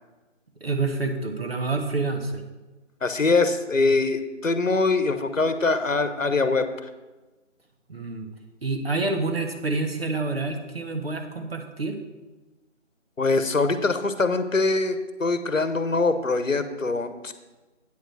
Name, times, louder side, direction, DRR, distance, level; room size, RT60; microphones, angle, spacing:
voice 1, 0.6-2.4 7.9-8.3 8.6-12.0, right 3 dB, 50° right, 4 dB, 1.4 m, -28 dB
voice 2, 3.0-6.9 13.2-17.3, left 3 dB, 90° left, 10 dB, 1.0 m, -23 dB
9.0 x 4.8 x 7.6 m, 1.2 s
figure-of-eight pair, 165°, 38 cm